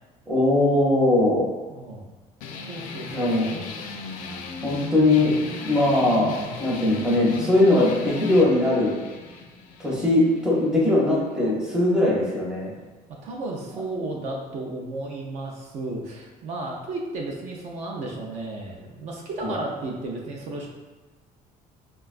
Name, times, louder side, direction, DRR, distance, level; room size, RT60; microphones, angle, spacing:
voice 1, 0.3-1.4 3.1-3.4 4.6-5.3 5.6-6.3 6.6-8.9 9.8-12.7 19.4-19.5, left 2 dB, 5° right, -5 dB, 0.6 m, -20 dB
voice 2, 1.7-2.1 2.7-3.7 13.2-20.7, right 2 dB, 50° right, -1 dB, 0.4 m, -33 dB
sound 1, 2.4-11.4, left 4 dB, 65° left, 0.4 m, -37 dB
4.5 x 2.2 x 2.4 m, 1.2 s
cardioid pair, 170°, 15 cm